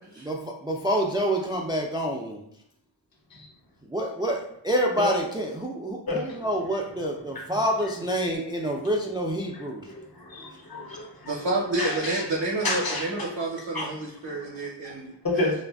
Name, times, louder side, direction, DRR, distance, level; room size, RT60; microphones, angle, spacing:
voice 1, 0.2-2.4 3.9-9.9, equal, 10° right, 0 dB, 0.3 m, -27 dB
voice 2, 6.1-6.4 7.3-7.4 9.5-11.4 11.8-12.2 12.6-13.3 13.7-13.9 14.2-14.4 15.2-15.5, left 2 dB, 50° left, -1 dB, 0.8 m, -31 dB
voice 3, 11.2-15.5, right 2 dB, 65° right, -3 dB, 0.7 m, -29 dB
2.6 x 2.4 x 2.2 m, 0.73 s
cardioid pair, 45°, 44 cm